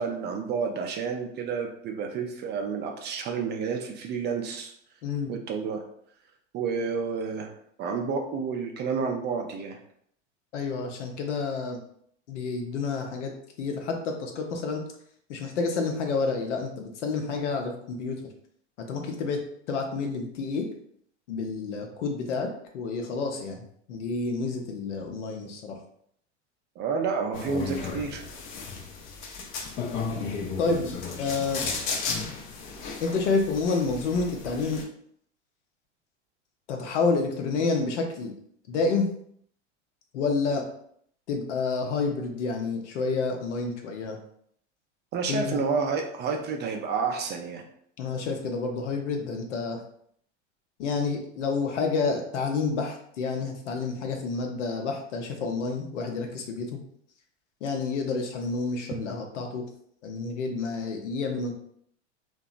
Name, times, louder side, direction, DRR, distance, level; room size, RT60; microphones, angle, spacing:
voice 1, 0.0-4.7 5.3-5.8 6.5-7.5 7.8-9.8 26.8-28.2 45.1-47.6, right 5 dB, 30° right, 3 dB, 0.4 m, -30 dB
voice 2, 5.0-5.3 10.5-11.8 12.3-13.3 13.6-14.8 15.3-18.2 18.8-19.4 19.7-20.7 21.3-25.8 30.6-31.6 33.0-34.8 36.7-38.3 38.7-39.1 40.1-40.7 41.3-44.2 45.3-45.6 48.0-49.8 50.8-56.8 57.6-59.7 60.0-61.5, left 4 dB, 75° left, 3 dB, 0.7 m, -29 dB
sound 1, 27.3-34.8, left 4 dB, 35° left, 0.5 m, -34 dB
2.7 x 2.2 x 2.4 m, 0.66 s
hypercardioid pair, 85°, 36 cm